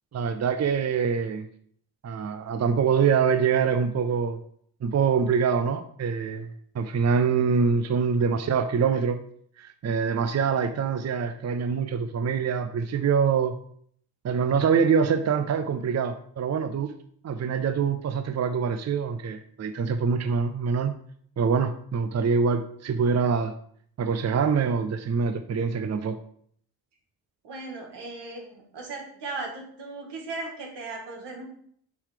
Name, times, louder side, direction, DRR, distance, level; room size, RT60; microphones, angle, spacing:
voice 1, 0.1-1.5 2.0-4.4 4.8-6.5 6.7-9.2 9.6-13.5 14.2-16.9 17.2-21.0 21.4-23.5 24.0-26.2, right 6 dB, 40° right, 9 dB, 0.6 m, -25 dB
voice 2, 27.4-31.5, right 3 dB, 80° right, 0 dB, 1.8 m, -37 dB
7.0 x 3.2 x 4.9 m, 0.63 s
cardioid pair, 60°, 41 cm